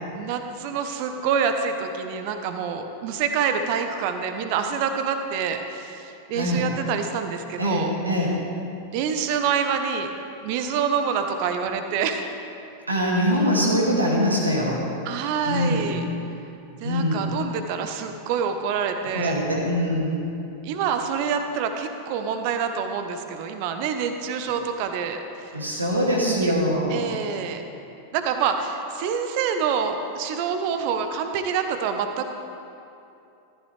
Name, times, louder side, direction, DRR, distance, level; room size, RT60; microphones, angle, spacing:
voice 1, 0.1-7.9 8.9-10.1 10.4-12.3 15.0-16.1 16.8-19.4 20.6-25.5 26.0-26.5 26.9-27.6 28.1-32.3, right 6 dB, 45° right, 7 dB, 0.9 m, -27 dB
voice 2, 6.3-6.7 7.6-8.3 12.9-14.8 15.4-15.9 16.8-17.2 19.1-20.2 25.5-27.0, equal, 80° right, -3 dB, 2.3 m, -23 dB
14.0 x 12.0 x 3.3 m, 2.7 s
figure-of-eight pair, 90°, 0 cm